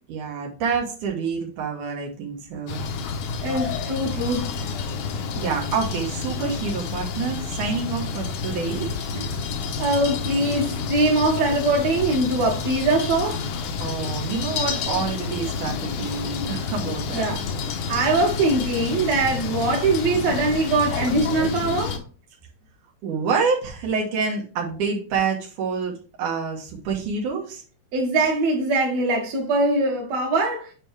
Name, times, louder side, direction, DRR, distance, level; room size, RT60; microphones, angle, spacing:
voice 1, 0.1-2.8 5.4-9.3 13.8-17.3 23.0-27.6, right 5 dB, 85° right, 2.8 m, -27 dB
sound 1, 2.7-22.0, left 5 dB, 90° left, 2.4 m, -29 dB
voice 2, 3.4-4.5 9.8-13.4 17.1-17.4 17.9-22.0 27.9-30.7, right 2 dB, 60° right, 2.8 m, -22 dB
8.7 x 4.6 x 3.4 m
omnidirectional pair, 3.5 m